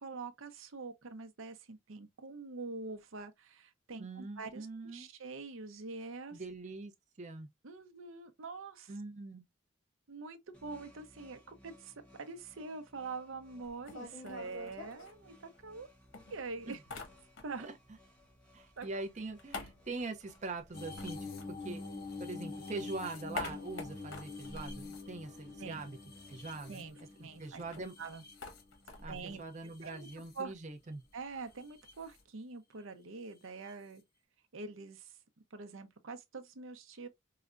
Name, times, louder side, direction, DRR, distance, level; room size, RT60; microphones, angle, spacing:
voice 1, 0.0-4.7 4.9-6.4 7.6-9.0 10.1-15.9 16.3-16.8 17.4-17.7 18.8-18.9 25.6-25.8 26.7-28.2 29.1-29.4 29.8-30.1 30.3-30.5 31.1-34.0 34.5-35.1 35.5-37.1, right 4 dB, 80° right, 0.7 m, -45 dB
voice 2, 4.0-5.1 6.3-6.9 7.2-7.5 8.9-9.4 16.7-16.8 17.6-17.7 18.5-21.8 22.2-26.0 26.3-26.8 27.4-27.9 29.0-31.0, right 3 dB, 35° right, 0.5 m, -43 dB
sound 1, 10.5-26.9, left 1 dB, 5° left, 0.8 m, -63 dB
sound 2, 13.6-15.8 16.1-17.8 18.0-22.2 22.5-25.8 26.1-26.2 26.4-32.2, left 3 dB, 85° left, 1.1 m, -48 dB
sound 3, 20.7-29.1 29.6-30.4 31.6-31.9 33.7-33.8, left 3 dB, 50° left, 0.6 m, -46 dB
4.7 x 2.1 x 2.4 m
head